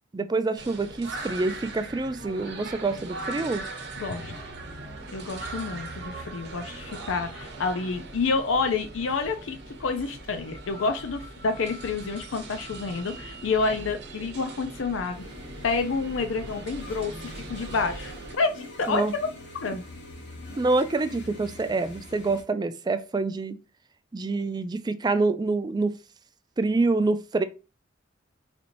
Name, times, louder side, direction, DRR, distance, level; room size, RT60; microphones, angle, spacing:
voice 1, 0.1-3.6 18.9-19.1 20.6-23.5 24.1-25.9 26.6-27.4, right 3 dB, 20° right, 0.3 m, -26 dB
sound 1, 0.6-18.3, right 2 dB, 60° right, 0.9 m, -40 dB
voice 2, 4.0-4.3 5.1-15.2 15.6-19.0 19.6-19.8, left 4 dB, 85° left, 0.5 m, -29 dB
sound 2, 15.1-22.4, left 2 dB, 65° left, 1.2 m, -44 dB
4.2 x 2.9 x 2.6 m
head